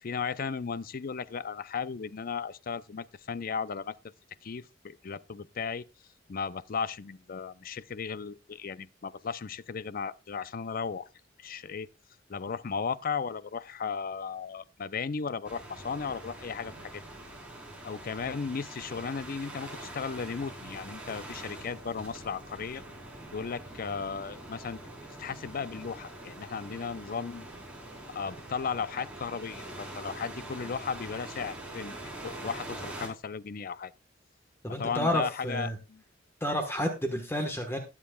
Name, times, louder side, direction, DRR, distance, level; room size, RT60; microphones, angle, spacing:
voice 1, 0.0-4.0 4.4-5.8 6.3-11.1 11.4-11.9 12.3-17.0 17.8-22.8 23.3-24.8 25.2-27.5 28.1-32.0 32.2-33.9 34.8-36.0, left 5 dB, 50° left, 0.5 m, -35 dB
sound 1, 15.4-33.1, right 1 dB, 5° right, 3.9 m, -44 dB
voice 2, 34.6-35.8 36.4-37.8, equal, 15° left, 1.3 m, -30 dB
20.5 x 7.4 x 2.3 m
head